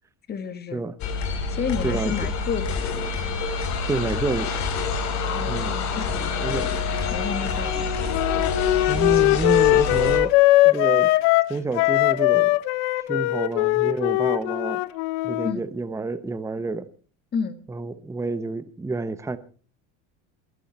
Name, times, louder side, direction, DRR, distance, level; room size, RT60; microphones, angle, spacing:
voice 1, 0.3-0.8 1.5-3.2 5.1-7.9 15.4-15.6 17.3-17.6, left 6 dB, 30° left, 1.9 m, -32 dB
sound 1, 1.0-10.2, left 4 dB, 55° left, 4.4 m, -27 dB
voice 2, 1.8-2.1 3.9-4.5 5.5-5.8 6.4-6.7 8.9-10.3 10.6-11.1 11.5-12.5 13.1-14.8 15.2-16.9 17.7-19.4, right 3 dB, 10° right, 0.9 m, -28 dB
Wind instrument woodwind instrument, 8.1-15.5, left 19 dB, 90° left, 0.9 m, -20 dB
22.5 x 11.0 x 4.2 m
cardioid pair, 140°, 34 cm